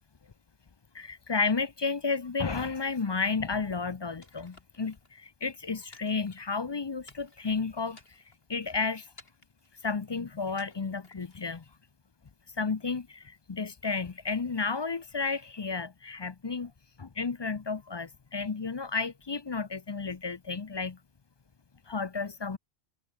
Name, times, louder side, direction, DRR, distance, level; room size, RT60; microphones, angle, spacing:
voice 1, 0.9-8.0 8.5-9.1 9.8-11.6 12.6-16.7 17.0-21.0 21.9-22.6, left 4 dB, 30° left, 0.5 m, -32 dB
sound 1, 4.2-5.1 5.9-6.7 7.1-7.5 7.9-8.5 9.2-9.7 10.6-11.5, left 2 dB, 65° left, 4.9 m, -56 dB
omnidirectional pair, 1.1 m